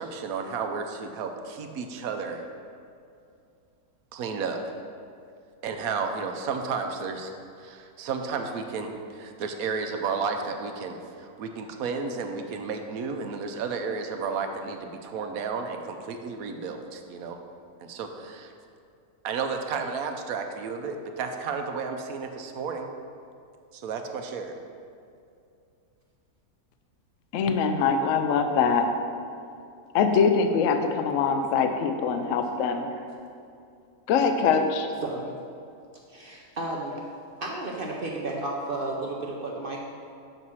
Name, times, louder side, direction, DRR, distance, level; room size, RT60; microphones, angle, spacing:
voice 1, 0.0-2.5 4.1-4.6 5.6-7.3 7.6-17.4 17.9-18.5 19.2-22.9 23.7-24.6, right 5 dB, 70° right, 5 dB, 1.1 m, -32 dB
voice 2, 27.3-28.9 29.9-32.8 34.1-34.9, left 5 dB, 65° left, 6 dB, 0.8 m, -23 dB
voice 3, 32.5-33.0 35.0-35.3 36.1-37.0 37.4-39.8, right 2 dB, 55° right, -1 dB, 0.6 m, -33 dB
6.7 x 4.2 x 6.2 m, 2.5 s
omnidirectional pair, 1.6 m